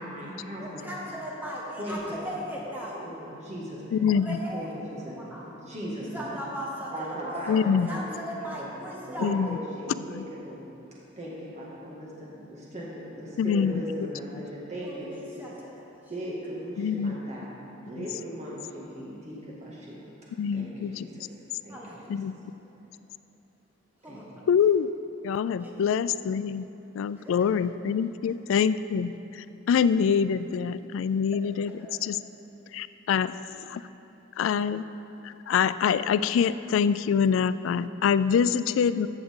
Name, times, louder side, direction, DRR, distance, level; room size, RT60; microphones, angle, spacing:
voice 1, 0.0-1.0 1.8-2.3 2.9-4.1 4.5-5.2 5.4-6.4 6.9-8.7 9.1-10.6 11.2-15.3 16.1-17.5 17.9-20.0 20.5-21.3 21.6-21.8 22.1-22.2 24.1-24.2, equal, 35° right, -6 dB, 2.0 m, -38 dB
voice 2, 0.6-3.1 4.1-4.7 5.2-5.4 6.1-9.3 14.8-15.8 21.7-22.0 24.0-24.5 25.6-25.7 27.2-27.5 31.6-31.9, equal, 10° right, -5 dB, 1.6 m, -38 dB
voice 3, 3.9-4.4 7.5-7.9 9.2-9.6 10.0-10.2 13.4-13.8 16.8-17.1 18.0-18.1 20.4-21.1 22.1-22.5 24.5-24.9 25.2-26.7 26.9-31.7 32.0-32.2 32.7-33.8 34.4-34.8 35.2-39.1, left 7 dB, 85° left, 15 dB, 0.3 m, -25 dB
14.0 x 7.0 x 3.7 m, 3.0 s
head